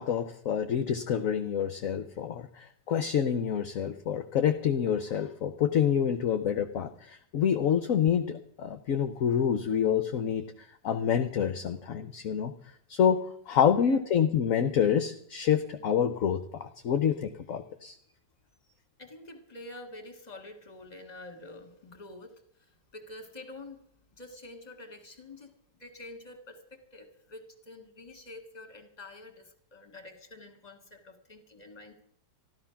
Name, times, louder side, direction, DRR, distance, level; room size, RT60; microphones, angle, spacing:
voice 1, 0.0-12.5 12.9-13.2 13.5-18.0, left 8 dB, 60° left, 9 dB, 1.0 m, -27 dB
voice 2, 19.0-23.8 24.2-25.5 25.8-32.0, left 2 dB, 25° left, 6 dB, 1.9 m, -47 dB
13.5 x 12.5 x 5.8 m, 0.66 s
omnidirectional pair, 1.9 m